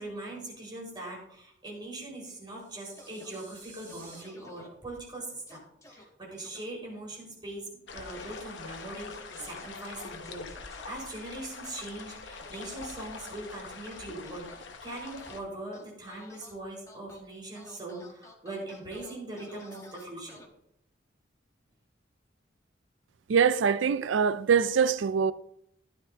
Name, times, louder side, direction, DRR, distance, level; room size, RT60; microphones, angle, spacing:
voice 1, 0.0-5.6 5.9-20.4, right 2 dB, 25° right, 4.8 m, -41 dB
sound 1, 2.4-4.2, right 3 dB, 45° right, 4.5 m, -52 dB
sound 2, 3.0-3.4 3.9-4.7 5.5-6.0 6.4-6.6 8.1-8.4 8.8-9.7 10.2-10.8 11.6-13.3 13.9-14.6 15.0-15.4 15.7-16.5 16.9-17.2 17.5-20.4, left 1 dB, 15° left, 1.2 m, -53 dB
sound 3, 7.9-15.4, left 4 dB, 75° left, 0.9 m, -44 dB
voice 2, 23.3-25.3, right 6 dB, 85° right, 0.4 m, -23 dB
12.5 x 9.8 x 2.8 m
head